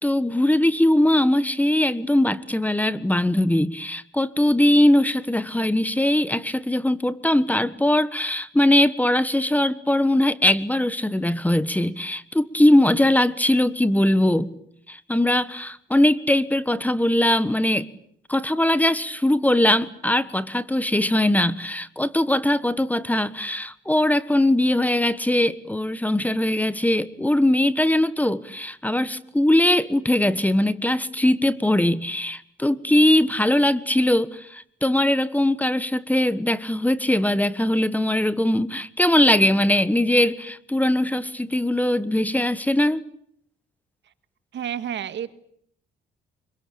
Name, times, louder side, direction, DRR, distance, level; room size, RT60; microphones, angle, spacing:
voice 1, 0.0-14.5 14.9-17.9 18.3-43.0, left 1 dB, 10° left, 16 dB, 1.4 m, -21 dB
voice 2, 44.5-45.3, right 9 dB, 65° right, 13 dB, 1.7 m, -29 dB
25.5 x 23.5 x 8.7 m, 0.67 s
cardioid pair, 90°, 20 cm